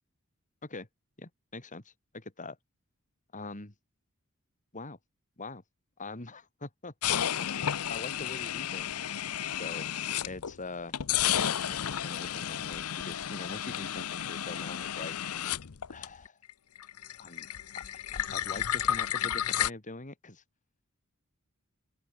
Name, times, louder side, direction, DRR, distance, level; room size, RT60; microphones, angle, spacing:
voice 1, 1.2-2.6 3.3-3.7 4.7-5.0 5.4-5.6 6.0-9.0 9.6-9.9 10.2-11.0 11.2-15.1 15.9-16.4 17.2-17.5 17.7-17.8 18.1-20.4, left 3 dB, 35° left, 2.6 m, -43 dB
sound 1, 7.0-10.5 10.9-16.5 16.8-19.7, left 10 dB, 80° left, 0.7 m, -32 dB
open air
head